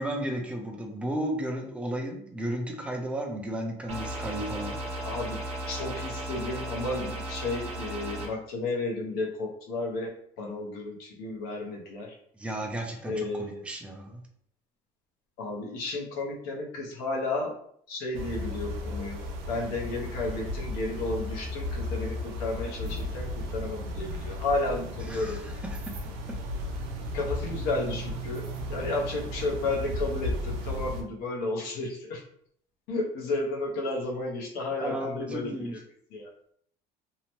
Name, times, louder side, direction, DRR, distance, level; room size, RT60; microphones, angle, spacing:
voice 1, 0.0-4.8 12.4-14.2 25.0-25.8 34.8-35.8, right 1 dB, 10° right, 2 dB, 0.4 m, -34 dB
sound 1, 3.9-8.3, right 1 dB, 40° right, 0.8 m, -35 dB
voice 2, 5.0-5.4 5.7-12.1 13.0-13.6 15.4-17.6 17.9-19.2 19.5-25.4 27.1-32.2 32.9-35.8 36.1-36.3, left 2 dB, 75° left, -1 dB, 0.8 m, -32 dB
sound 2, 18.1-31.0, left 1 dB, 80° right, 0.6 m, -35 dB
2.7 x 2.1 x 3.0 m, 0.66 s
cardioid pair, 140°, 16 cm